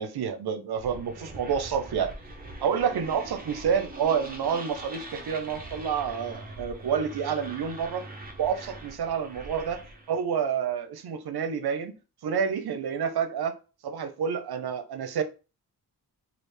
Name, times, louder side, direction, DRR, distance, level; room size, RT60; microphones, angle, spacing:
voice 1, 0.0-2.1 2.6-8.0 8.4-9.8 10.1-11.9 12.2-13.5 13.8-15.2, right 7 dB, 70° right, 0.6 m, -29 dB
sound 1, 0.8-10.2, right 1 dB, 25° right, 0.5 m, -42 dB
3.2 x 2.4 x 3.2 m
wide cardioid pair, 165°, 40 cm